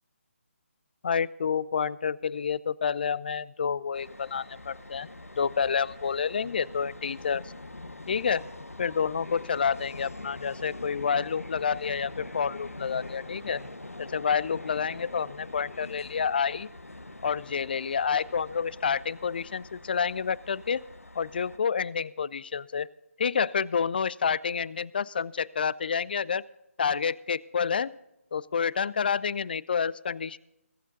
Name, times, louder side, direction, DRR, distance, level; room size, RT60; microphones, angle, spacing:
voice 1, 1.0-5.1 5.4-7.4 8.1-8.4 8.8-13.6 14.0-16.7 17.2-20.8 21.2-22.9 23.2-26.4 26.8-27.9 28.3-30.4, left 6 dB, 40° left, 23 dB, 0.4 m, -29 dB
sound 1, 3.9-21.6, left 2 dB, 85° left, 1.1 m, -44 dB
21.0 x 8.4 x 3.9 m, 0.88 s
figure-of-eight pair, 150°, 8 cm